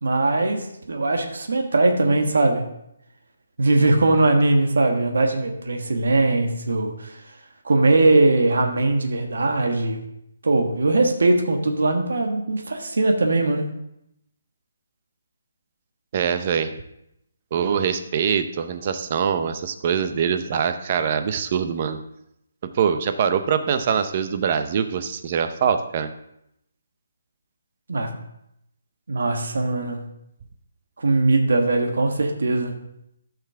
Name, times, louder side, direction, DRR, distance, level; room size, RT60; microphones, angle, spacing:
voice 1, 0.0-2.7 3.6-7.2 7.6-10.0 10.4-13.6 27.9-28.2 29.1-30.1 31.0-32.8, right 2 dB, 85° right, 3 dB, 1.4 m, -20 dB
voice 2, 16.1-16.7 17.5-22.0 22.6-26.1, right 7 dB, 30° right, 9 dB, 0.6 m, -23 dB
13.5 x 5.8 x 3.7 m, 0.79 s
hypercardioid pair, 175°, 0 cm